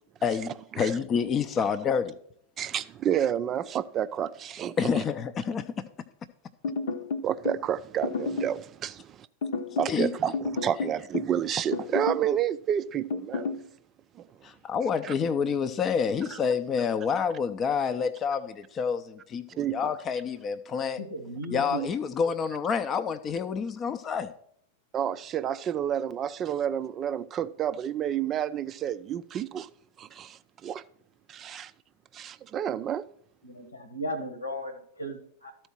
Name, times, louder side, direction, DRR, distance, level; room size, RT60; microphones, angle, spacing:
voice 1, 0.2-0.5 0.8-2.2 4.8-5.9 9.9-10.1 14.4-21.0 21.5-24.3, left 6 dB, 25° left, 0.5 m, -28 dB
voice 2, 2.6-5.0 7.2-9.3 9.8-13.5 14.2-14.3 15.0-15.1 16.3-16.4 19.6-19.8 24.9-29.7 30.0-30.8 31.3-31.7 32.1-33.0, right 10 dB, 30° right, 0.4 m, -30 dB
sound 1, 6.6-7.6 8.0-8.6 9.4-10.0 10.3-11.4 11.7-12.3 13.1-13.6, left 4 dB, 60° left, 0.8 m, -31 dB
voice 3, 21.0-21.9 33.4-35.6, right 1 dB, 80° left, 1.4 m, -36 dB
13.0 x 4.4 x 5.9 m
figure-of-eight pair, 90°, 0 cm